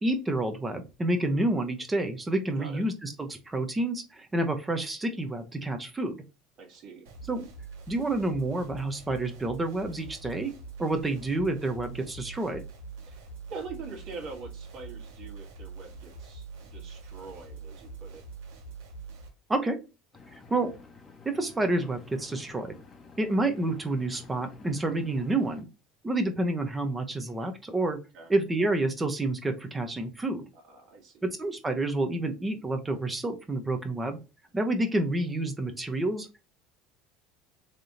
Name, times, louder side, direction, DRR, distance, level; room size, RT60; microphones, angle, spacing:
voice 1, 0.0-6.2 7.3-7.5 7.9-10.5 10.8-12.6 19.5-19.8 20.5-20.7 21.2-22.8 23.2-25.7 26.0-28.0 28.3-30.4 31.2-34.2 34.5-36.4, right 2 dB, 15° right, 7 dB, 0.8 m, -29 dB
voice 2, 6.6-7.0 13.1-18.2 28.1-28.3 30.7-31.2, right 4 dB, 55° right, 1 dB, 1.6 m, -44 dB
sound 1, 7.1-19.3, right 4 dB, 90° right, 1.3 m, -44 dB
Engine, 20.1-25.6, left 3 dB, 20° left, 0.8 m, -51 dB
3.3 x 2.8 x 3.8 m, 0.30 s
supercardioid pair, 125°, 0 cm